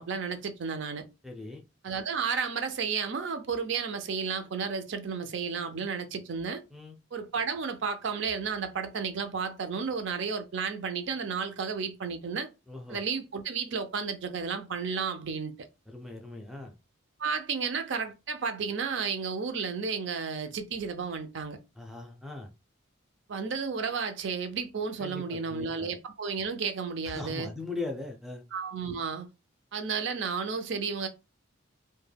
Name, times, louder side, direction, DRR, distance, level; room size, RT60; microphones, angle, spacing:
voice 1, 0.0-1.0 1.8-6.6 7.1-12.5 12.9-15.5 17.2-21.6 23.3-27.5 28.5-29.3 29.7-31.1, right 5 dB, 60° right, 0.4 m, -32 dB
voice 2, 1.2-1.6 6.7-7.0 12.7-13.0 15.9-16.7 21.8-22.5 25.0-25.9 27.1-28.4, left 3 dB, ahead, 0.4 m, -39 dB
2.2 x 2.1 x 3.3 m
head